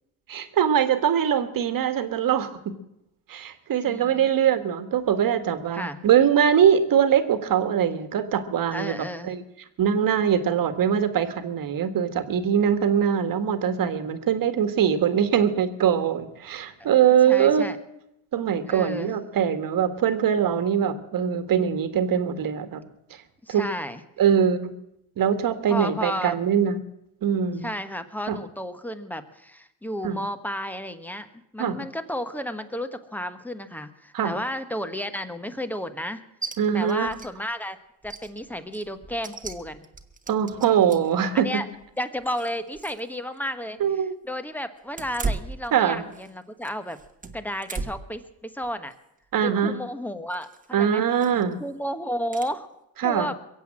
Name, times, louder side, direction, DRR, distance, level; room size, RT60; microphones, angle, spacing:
voice 1, 0.3-2.7 3.3-9.4 9.8-17.7 18.3-22.8 23.5-23.6 24.2-24.7 25.2-26.8 27.2-27.7 28.3-28.4 30.0-30.2 31.6-31.8 34.1-34.3 36.6-37.1 40.3-41.6 43.8-44.1 45.7-46.0 49.3-49.8 50.7-51.6 53.0-53.3, right 8 dB, 50° right, 10 dB, 1.7 m, -22 dB
voice 2, 3.8-4.3 5.7-6.0 8.7-9.3 17.3-17.8 18.7-19.1 23.4-24.0 25.7-26.4 27.6-31.3 31.5-36.2 36.7-37.8 38.0-39.8 41.4-41.7 42.0-43.8 44.2-47.0 47.3-48.9 49.4-51.0 51.6-52.7 53.0-53.3, equal, 5° left, 10 dB, 1.2 m, -32 dB
sound 1, 36.4-36.6 36.9-37.3 37.6-37.7 38.0-41.2 41.7-43.1 43.4-43.5 44.9-46.3 46.6-48.2 48.6-48.9 50.3-50.7 51.2-51.5 52.3-52.5, right 4 dB, 20° right, 1.3 m, -36 dB
22.5 x 8.1 x 7.5 m, 0.84 s
supercardioid pair, 95°, 44 cm